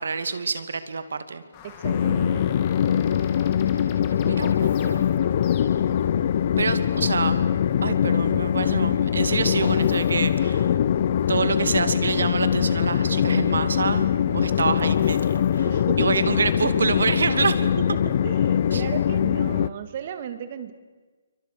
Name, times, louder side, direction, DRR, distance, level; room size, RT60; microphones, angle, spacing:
voice 1, 0.0-1.4 4.2-5.0 6.6-7.4 7.8-10.7 11.3-15.7 16.0-17.6 18.7-18.8, right 4 dB, 75° right, 11 dB, 2.5 m, -26 dB
sound 1, 1.5-6.0, left 7 dB, 25° left, 3.0 m, -45 dB
voice 2, 1.6-2.5 15.6-16.1 17.6-20.7, right 9 dB, 35° right, 10 dB, 2.2 m, -35 dB
Train, 1.8-19.7, left 9 dB, 40° left, 0.7 m, -22 dB
28.5 x 24.0 x 6.8 m, 1.3 s
hypercardioid pair, 165°, 0 cm